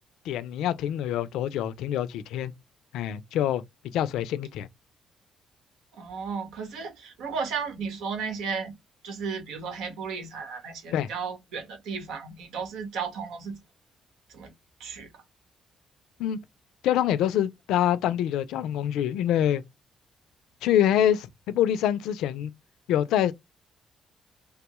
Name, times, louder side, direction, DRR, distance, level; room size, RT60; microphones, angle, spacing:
voice 1, 0.3-2.5 2.9-3.6 3.9-4.7 10.9-11.1 16.2-16.4 16.8-19.6 20.6-22.5 22.9-23.3, left 11 dB, 90° left, 0.4 m, -25 dB
voice 2, 5.9-8.7 9.0-13.6 14.3-14.5 14.8-15.1, right 5 dB, 90° right, 1.2 m, -34 dB
3.4 x 2.2 x 3.0 m
cardioid pair, 90°, 0 cm